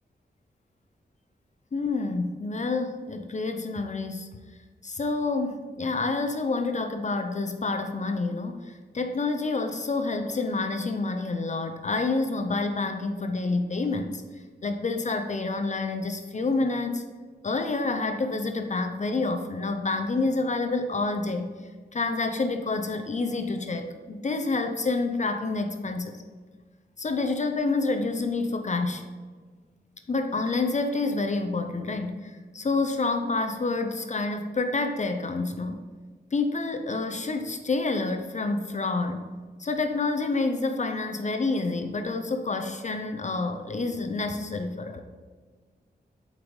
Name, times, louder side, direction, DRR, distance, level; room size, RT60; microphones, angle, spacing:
voice 1, 1.7-4.3 4.8-14.2 14.6-17.0 17.4-21.5 21.9-26.1 27.0-29.0 30.1-35.8 36.3-39.3 39.6-45.0, left 3 dB, 40° left, 6 dB, 0.6 m, -28 dB
7.4 x 5.2 x 3.2 m, 1.4 s
cardioid pair, 60°, 18 cm